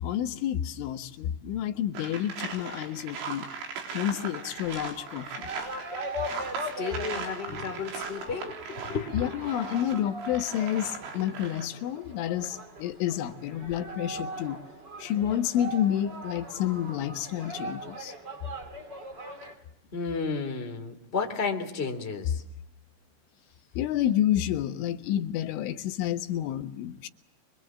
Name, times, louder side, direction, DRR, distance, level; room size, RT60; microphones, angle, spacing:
voice 1, 0.0-3.5 4.0-5.5 9.1-14.6 15.0-18.1 23.8-27.1, left 11 dB, 85° left, 8 dB, 3.7 m, -29 dB
sound 1, 1.9-11.8 12.3-12.5, right 5 dB, 80° right, 6.3 m, -39 dB
sound 2, 4.3-19.6, right 1 dB, 25° right, 3.6 m, -40 dB
voice 2, 6.6-9.5 9.9-10.0 19.9-22.4, left 5 dB, 15° left, 5 dB, 2.7 m, -33 dB
26.0 x 24.0 x 7.6 m, 0.79 s
omnidirectional pair, 5.4 m